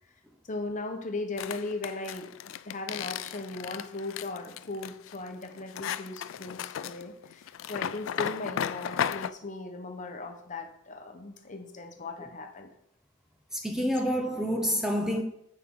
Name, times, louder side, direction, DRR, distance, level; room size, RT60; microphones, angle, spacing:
voice 1, 0.5-2.4 2.6-12.7, left 2 dB, 40° left, 1.0 m, -38 dB
sound 1, 1.4-9.3, left 9 dB, 70° left, 0.3 m, -35 dB
voice 2, 13.5-15.2, equal, 5° right, 0.7 m, -28 dB
9.9 x 4.6 x 3.7 m
head